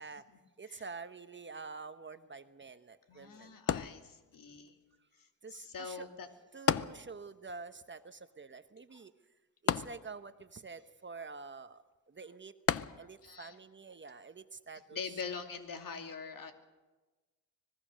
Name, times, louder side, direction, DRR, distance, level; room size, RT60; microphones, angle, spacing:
voice 1, 0.6-3.6 5.4-6.1 6.5-9.1 9.6-12.5 12.9-15.1, right 4 dB, 30° right, 10 dB, 1.1 m, -48 dB
voice 2, 3.1-4.8 5.2-6.3 12.9-13.6 14.9-16.5, left 5 dB, 60° left, 5 dB, 2.8 m, -44 dB
sound 1, 3.7-4.6 6.7-7.5 7.8-7.9 9.7-10.5 12.7-13.4 14.1-14.2, left 8 dB, 40° left, 0.7 m, -33 dB
25.0 x 19.5 x 6.4 m, 1.2 s
cardioid pair, 80°, 37 cm